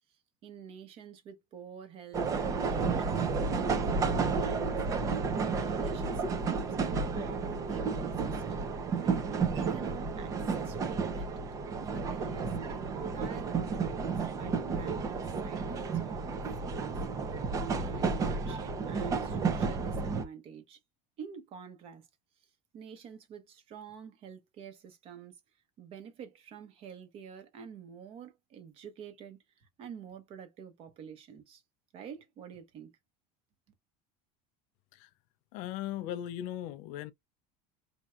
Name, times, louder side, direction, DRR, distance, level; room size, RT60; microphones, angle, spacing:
voice 1, 0.1-4.8 5.6-8.4 8.9-11.6 11.9-20.8 21.2-22.1 22.4-22.5 22.7-25.4 25.8-31.6 31.9-32.9, right 7 dB, 40° right, 1.0 m, -48 dB
sound 1, 2.1-20.2, right 4 dB, 20° right, 0.5 m, -32 dB
voice 2, 35.5-37.1, left 12 dB, 55° left, 0.4 m, -38 dB
4.3 x 2.7 x 2.4 m
cardioid pair, 175°, 16 cm